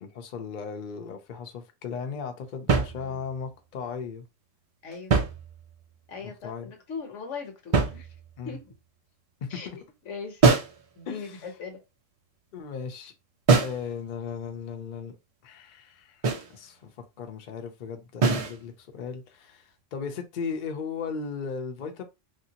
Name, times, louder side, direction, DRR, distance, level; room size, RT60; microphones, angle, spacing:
voice 1, 0.0-4.2 6.2-6.7 8.4-8.6 9.4-9.8 11.1-11.4 12.5-13.1 13.6-15.2 15.4-16.2 16.5-22.0, left 6 dB, 50° left, 0.6 m, -36 dB
sound 1, 2.7-3.5 4.9-5.9 7.7-8.5 10.4-10.8 13.5-13.9 16.2-16.6 18.2-18.6, right 4 dB, 50° right, 0.4 m, -23 dB
voice 2, 6.1-8.1 8.4-8.8 9.5-9.7 10.1-10.4 11.0-11.8, left 5 dB, 80° left, 1.2 m, -39 dB
3.2 x 2.6 x 2.8 m
omnidirectional pair, 1.3 m